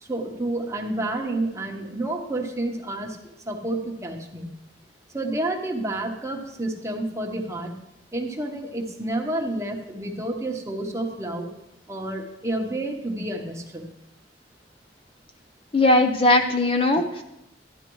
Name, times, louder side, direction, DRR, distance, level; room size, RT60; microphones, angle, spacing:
voice 1, 0.0-3.2 3.4-4.5 5.1-7.8 8.1-11.5 11.9-13.9, right 1 dB, 15° right, 1 dB, 1.1 m, -29 dB
voice 2, 15.7-17.2, left 2 dB, 30° left, 5 dB, 0.6 m, -19 dB
12.5 x 10.5 x 3.1 m, 0.87 s
head